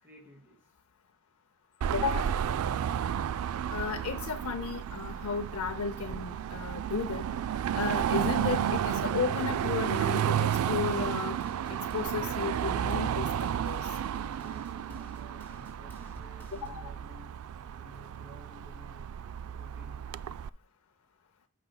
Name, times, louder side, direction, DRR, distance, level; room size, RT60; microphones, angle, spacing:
voice 1, 0.0-0.7 13.8-17.4 17.7-19.2 19.6-20.2, equal, 10° right, 2.7 m, -54 dB
Car passing by / Traffic noise roadway noise / Engine, 1.8-20.5, right 9 dB, 80° right, 0.3 m, -32 dB
voice 2, 1.9-2.4 3.7-7.3 7.7-11.4 11.7-13.9 16.5-16.9, left 5 dB, 80° left, 0.6 m, -34 dB
sound 1, 8.9-16.9, left 1 dB, 10° left, 2.8 m, -55 dB
14.5 x 5.3 x 2.2 m
head